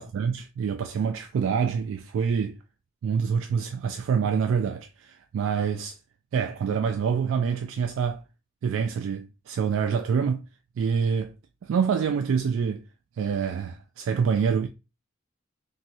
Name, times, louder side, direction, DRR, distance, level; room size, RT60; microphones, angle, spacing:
voice 1, 0.0-2.6 3.0-6.0 6.3-8.2 8.6-10.5 10.8-11.3 11.6-12.8 13.2-14.7, right 6 dB, 80° right, 0.3 m, -26 dB
3.0 x 2.6 x 2.7 m
head